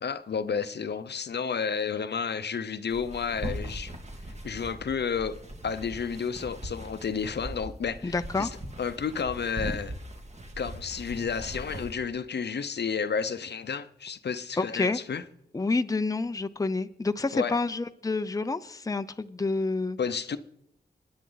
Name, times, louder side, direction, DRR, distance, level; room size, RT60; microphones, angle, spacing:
voice 1, 0.0-3.9 4.4-5.4 5.6-8.5 8.8-9.9 10.6-15.2 17.3-17.6 20.0-20.4, left 6 dB, 75° left, 0.8 m, -31 dB
sound 1, 2.9-11.9, right 1 dB, 40° right, 2.1 m, -40 dB
voice 2, 8.0-8.5 14.6-15.0 15.5-20.0, left 3 dB, 20° left, 0.6 m, -28 dB
26.5 x 10.5 x 4.0 m
wide cardioid pair, 85°, 17 cm